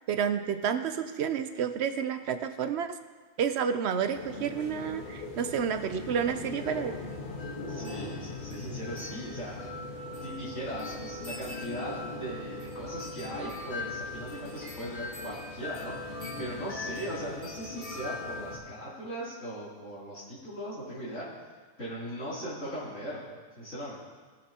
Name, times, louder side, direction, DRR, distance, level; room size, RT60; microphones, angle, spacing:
voice 1, 0.1-3.0 3.4-7.0, right 7 dB, 60° right, 9 dB, 0.8 m, -30 dB
sound 1, 4.1-18.6, left 2 dB, 40° left, 1.4 m, -39 dB
voice 2, 7.7-9.7 10.2-21.3 21.8-23.9, right 1 dB, 70° left, -10 dB, 3.3 m, -39 dB
19.5 x 6.7 x 2.9 m, 1.5 s
omnidirectional pair, 1.4 m